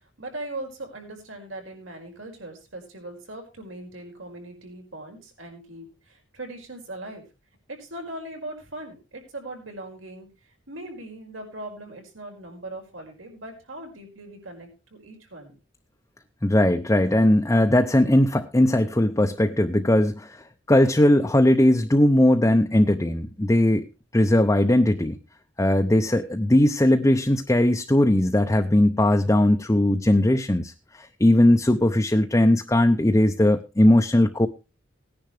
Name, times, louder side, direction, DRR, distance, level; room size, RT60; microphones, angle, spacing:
voice 1, 0.2-7.3 7.7-10.3 10.7-15.5, right 1 dB, 90° right, 2 dB, 5.3 m, -39 dB
voice 2, 16.4-23.8 24.1-25.2 25.6-34.5, left 1 dB, 15° left, 5 dB, 0.7 m, -19 dB
19.0 x 10.5 x 3.2 m, 0.30 s
head